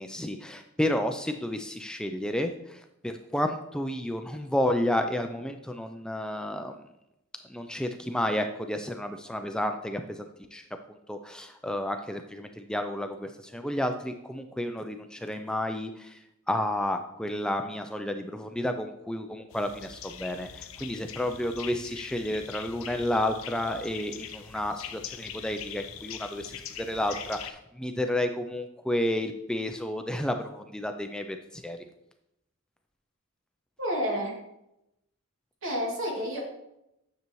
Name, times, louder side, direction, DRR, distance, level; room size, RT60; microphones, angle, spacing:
voice 1, 0.0-6.8 7.5-10.2 10.5-10.6 11.1-16.2 16.5-31.8, left 1 dB, 5° left, 6 dB, 0.3 m, -31 dB
sound 1, 19.5-27.5, left 9 dB, 80° left, 0.6 m, -42 dB
voice 2, 33.8-34.3 35.6-36.4, equal, 70° right, -2 dB, 2.4 m, -29 dB
9.3 x 6.8 x 3.0 m, 0.85 s
head